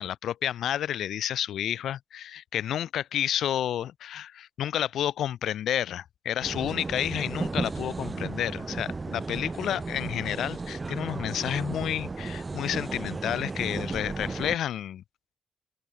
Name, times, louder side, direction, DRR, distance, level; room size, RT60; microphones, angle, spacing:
voice 1, 0.0-15.0, left 11 dB, 70° left, 0.5 m, -30 dB
sound 1, 6.4-14.6, right 3 dB, 25° right, 0.6 m, -34 dB
open air
cardioid pair, 90°, 0 cm